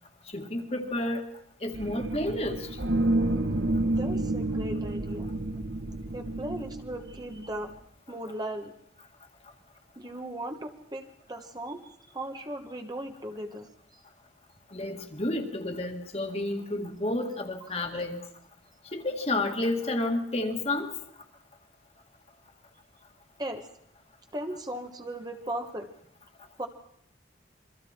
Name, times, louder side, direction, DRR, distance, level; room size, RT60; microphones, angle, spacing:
voice 1, 0.3-1.2 1.6-2.8 14.7-18.2 18.9-20.9, left 2 dB, 35° left, 4 dB, 1.9 m, -30 dB
sound 1, 1.7-7.7, right 2 dB, 80° right, 1.5 m, -29 dB
voice 2, 3.8-5.3 6.1-7.7 8.1-8.7 10.0-13.7 23.4-23.7 24.3-25.9 26.6-26.7, right 1 dB, 20° right, 5 dB, 1.2 m, -37 dB
27.0 x 23.0 x 4.4 m, 0.70 s
head